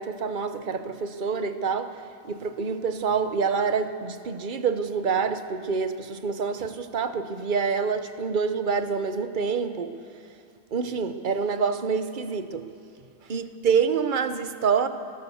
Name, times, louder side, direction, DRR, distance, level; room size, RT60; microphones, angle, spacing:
voice 1, 0.0-1.9 2.3-9.9 10.7-12.6 13.3-14.9, right 5 dB, 45° right, 10 dB, 1.0 m, -26 dB
21.0 x 18.0 x 7.1 m, 2.6 s
omnidirectional pair, 1.3 m